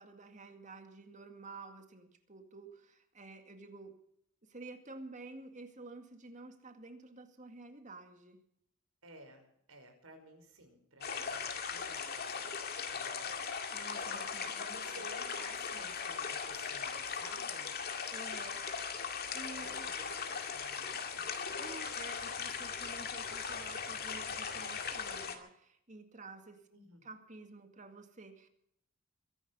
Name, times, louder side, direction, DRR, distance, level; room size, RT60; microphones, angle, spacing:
voice 1, 0.0-4.0 4.4-8.4 13.7-15.1 18.1-18.6 19.0-19.9 21.6-26.7 27.0-28.5, right 3 dB, 35° right, 7 dB, 2.1 m, -51 dB
voice 2, 9.0-13.8 14.4-17.7 19.6-21.3 26.7-27.1, right 1 dB, 80° right, 4 dB, 5.6 m, -55 dB
sound 1, 11.0-25.4, left 6 dB, 45° left, 2.1 m, -39 dB
23.0 x 11.0 x 5.5 m, 0.71 s
head